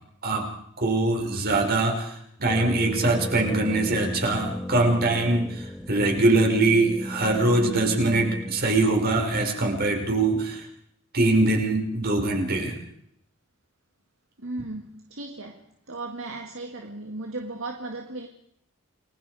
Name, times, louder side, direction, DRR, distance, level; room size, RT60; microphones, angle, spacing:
voice 1, 0.8-10.6 11.1-12.7, right 2 dB, 50° right, 5.3 m, -23 dB
sound 1, 2.4-9.1, left 1 dB, ahead, 1.5 m, -35 dB
voice 2, 14.4-18.3, right 2 dB, 70° right, 2.0 m, -36 dB
29.0 x 21.5 x 4.9 m
head